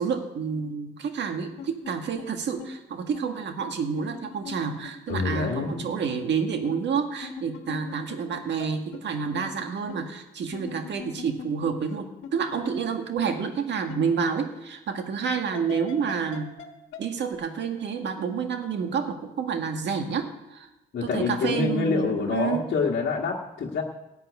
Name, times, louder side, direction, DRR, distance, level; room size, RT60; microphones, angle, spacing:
voice 1, 0.0-16.5 17.0-20.7 21.0-22.7, right 6 dB, 65° right, 6 dB, 1.6 m, -29 dB
sound 1, 1.6-1.9 2.2-2.3 2.6-2.7 3.1-3.2 4.0-5.4 5.7-5.8 6.1-6.2 6.6-6.7 7.2-8.7 8.9-9.0 9.3-9.4 9.9-10.0 10.5-12.0 12.2-12.3 12.6-12.8 13.2-13.3 13.9-14.0 15.5-16.7 16.9-17.0 17.3-17.4, left 7 dB, 90° left, 1.4 m, -40 dB
voice 2, 5.1-6.0 20.9-23.8, left 4 dB, 55° left, -3 dB, 1.6 m, -26 dB
13.5 x 5.8 x 9.4 m, 0.98 s
cardioid pair, 90°, 20 cm